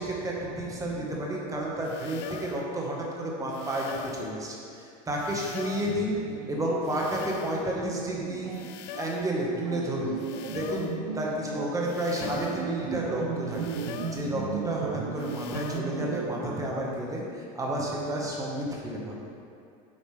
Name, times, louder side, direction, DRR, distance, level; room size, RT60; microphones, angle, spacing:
voice 1, 0.0-6.2 6.5-8.5 9.0-10.1 10.5-10.9 11.1-13.6 14.1-19.2, right 1 dB, 20° right, -3 dB, 1.5 m, -31 dB
sound 1, 1.8-2.7 3.5-4.3 5.2-6.0 6.8-7.7 8.5-9.3 10.2-11.0 11.8-12.7 13.5-14.3 15.2-15.8, left 9 dB, 60° left, 0.5 m, -42 dB
sound 2, 5.8-16.3, right 5 dB, 85° right, 0.6 m, -36 dB
8.6 x 5.0 x 3.4 m, 2.4 s
supercardioid pair, 105°, 19 cm